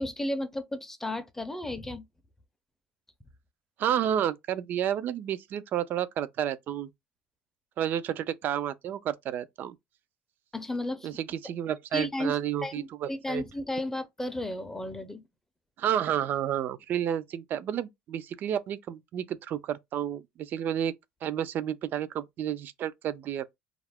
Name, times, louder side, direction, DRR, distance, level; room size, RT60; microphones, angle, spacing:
voice 1, 0.0-2.0 10.5-11.1 11.9-15.2, left 1 dB, 10° left, 0.5 m, -33 dB
voice 2, 3.8-6.9 7.8-9.7 11.0-13.4 15.8-20.9 21.2-23.5, right 10 dB, 50° right, 0.3 m, -31 dB
2.4 x 2.0 x 3.3 m
cardioid pair, 110°, 4 cm